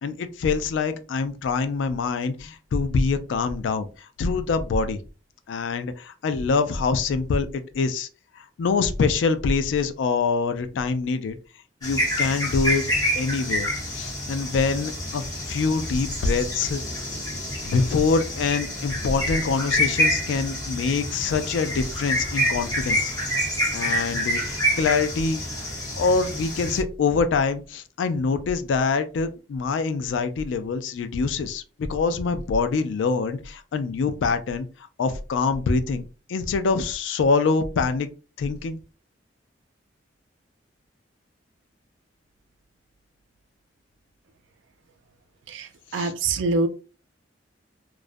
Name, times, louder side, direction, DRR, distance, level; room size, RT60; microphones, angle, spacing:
voice 1, 0.0-3.9 4.2-5.0 5.5-8.1 8.4-11.4 11.8-12.8 13.2-13.7 13.9-17.0 17.7-23.1 23.7-25.4 26.0-34.7 35.0-38.1 38.4-38.8 45.9-46.1, left 4 dB, 80° left, 0.3 m, -25 dB
sound 1, 11.8-26.8, equal, 20° left, 0.8 m, -27 dB
voice 2, 45.5-46.7, right 3 dB, 90° right, 0.4 m, -25 dB
2.4 x 2.1 x 2.5 m
head